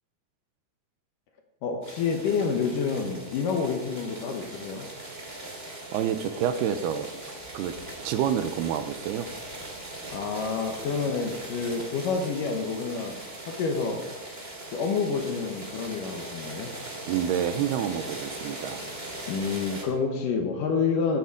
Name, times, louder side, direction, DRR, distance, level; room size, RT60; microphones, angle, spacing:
voice 1, 1.6-4.9 10.1-13.1 13.5-14.0 14.7-16.7 19.3-21.2, left 5 dB, 70° left, 3 dB, 2.3 m, -28 dB
sound 1, 1.8-19.8, right 1 dB, 20° right, 1.6 m, -40 dB
voice 2, 5.9-7.1 7.5-7.7 8.0-9.3 17.1-18.8, right 9 dB, 80° right, 10 dB, 2.5 m, -28 dB
14.5 x 10.0 x 4.8 m, 1.1 s
omnidirectional pair, 5.0 m